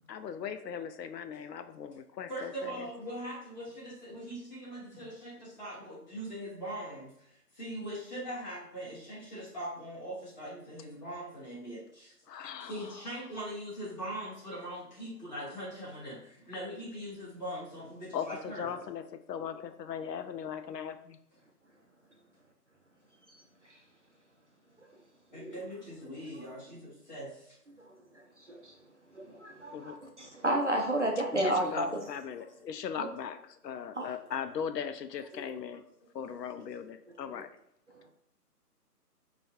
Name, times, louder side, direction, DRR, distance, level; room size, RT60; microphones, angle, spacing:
voice 1, 0.1-2.9 12.3-13.0 18.1-21.2 29.7-30.0 31.3-33.4 33.6-35.8 36.1-37.5, left 7 dB, 85° left, 9 dB, 0.5 m, -38 dB
voice 2, 2.3-18.8 25.3-27.6 33.0-33.1, right 1 dB, 25° left, -9 dB, 1.5 m, -41 dB
voice 3, 29.1-32.0 33.9-34.1 37.9-38.1, right 1 dB, 50° right, 1 dB, 0.4 m, -31 dB
4.9 x 2.3 x 2.7 m, 0.76 s
hypercardioid pair, 180°, 48 cm